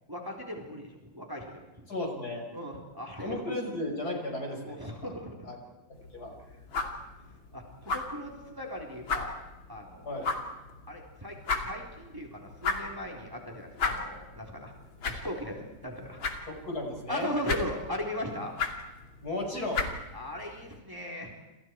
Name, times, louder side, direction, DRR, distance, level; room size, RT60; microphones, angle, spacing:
voice 1, 0.1-1.9 2.5-3.4 4.6-5.5 6.7-6.9 7.5-9.4 9.7-10.3 10.9-11.4 11.6-14.7 15.0-16.2 17.1-18.5 20.1-21.3, left 1 dB, 10° right, 0 dB, 4.0 m, -38 dB
voice 2, 1.9-2.5 3.2-5.1 5.4-5.6 6.1-6.3 10.1-10.3 16.5-17.3 19.2-19.9, left 1 dB, 50° left, 2 dB, 5.9 m, -34 dB
sound 1, 6.0-20.8, left 4 dB, 85° left, 3.6 m, -37 dB
29.5 x 28.0 x 4.8 m, 1.1 s
omnidirectional pair, 2.1 m